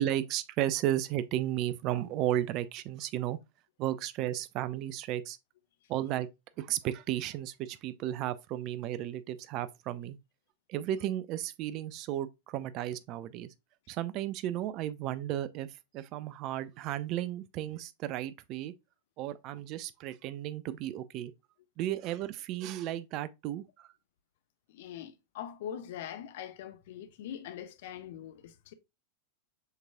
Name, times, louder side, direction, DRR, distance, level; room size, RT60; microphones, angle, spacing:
voice 1, 0.0-3.4 3.8-5.4 5.9-6.3 6.6-10.2 10.7-13.5 13.9-15.7 15.9-18.7 19.2-21.3 21.8-23.9, right 12 dB, 40° right, 0.3 m, -34 dB
voice 2, 24.7-28.7, left 9 dB, 55° left, 0.5 m, -42 dB
6.4 x 3.0 x 2.3 m
figure-of-eight pair, 90°, 0 cm